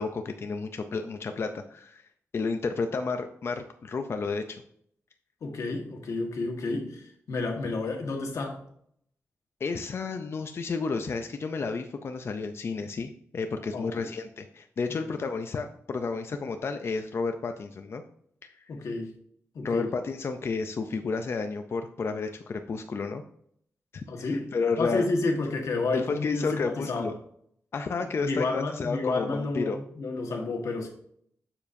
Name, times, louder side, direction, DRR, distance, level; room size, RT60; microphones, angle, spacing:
voice 1, 0.0-2.0 2.3-4.6 9.6-18.0 18.4-18.7 19.6-23.2 23.9-25.0 25.9-27.1 27.7-29.8, left 4 dB, 50° left, 7 dB, 0.5 m, -31 dB
voice 2, 5.4-8.6 13.7-14.1 18.7-19.1 19.5-19.9 24.1-24.5 24.8-27.1 28.2-30.9, left 3 dB, 80° left, 2 dB, 1.5 m, -30 dB
7.1 x 6.9 x 2.7 m, 0.66 s
wide cardioid pair, 110°, 5 cm